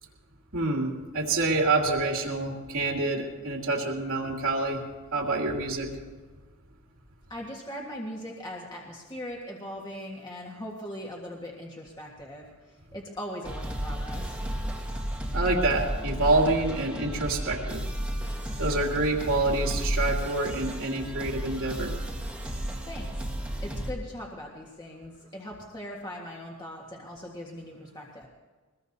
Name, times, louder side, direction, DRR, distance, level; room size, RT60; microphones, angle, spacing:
voice 1, 0.5-4.8 5.1-5.9 15.3-17.8 18.6-21.9, right 2 dB, 75° right, -1 dB, 2.9 m, -27 dB
voice 2, 7.3-14.4 22.9-23.3 23.6-28.3, equal, 20° left, -2 dB, 1.7 m, -40 dB
sound 1, 13.4-23.9, equal, 5° right, 1.8 m, -33 dB
23.0 x 20.5 x 2.8 m, 1.4 s
head